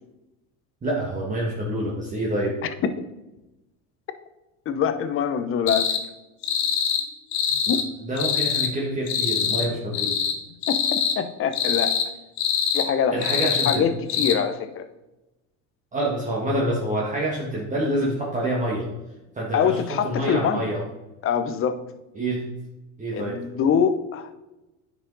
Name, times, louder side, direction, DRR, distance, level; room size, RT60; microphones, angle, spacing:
voice 1, 0.8-2.6 7.7-7.8 8.0-10.1 13.1-13.8 15.9-18.9 19.3-19.8 20.0-20.8 22.1-22.4 23.0-23.4, right 1 dB, 20° right, -4 dB, 1.5 m, -26 dB
voice 2, 2.6-2.9 4.7-6.0 7.7-7.8 10.5-12.0 12.7-13.2 13.6-14.9 19.5-20.7 21.2-21.8 23.1-24.3, left 7 dB, 35° left, 11 dB, 0.8 m, -24 dB
sound 1, 5.7-6.0 6.4-7.0 7.3-7.9 8.2-8.7 9.1-9.7 9.9-10.4 10.6-11.2 11.5-12.1 12.4-12.9 13.2-13.8 14.1-14.3, left 7 dB, 55° left, 1.3 m, -24 dB
10.0 x 5.0 x 4.0 m, 1.0 s
supercardioid pair, 110°, 36 cm